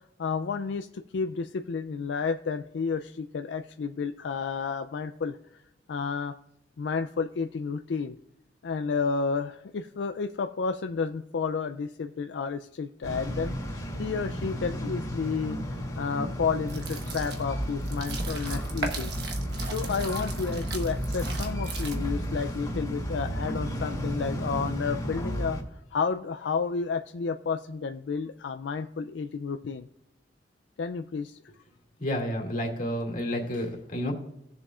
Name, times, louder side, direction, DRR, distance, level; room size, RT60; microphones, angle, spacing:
voice 1, 0.0-5.6 5.9-6.3 6.8-8.2 8.6-19.1 19.6-25.6 25.9-29.9 30.8-31.4, left 5 dB, 75° left, 7 dB, 0.4 m, -31 dB
sound 1, 13.0-25.6, equal, 20° left, 2.2 m, -33 dB
sound 2, 16.6-22.3, right 4 dB, 65° right, 1.3 m, -38 dB
voice 2, 32.0-34.1, equal, 50° left, 0 dB, 2.2 m, -30 dB
18.0 x 7.0 x 2.4 m, 0.83 s
head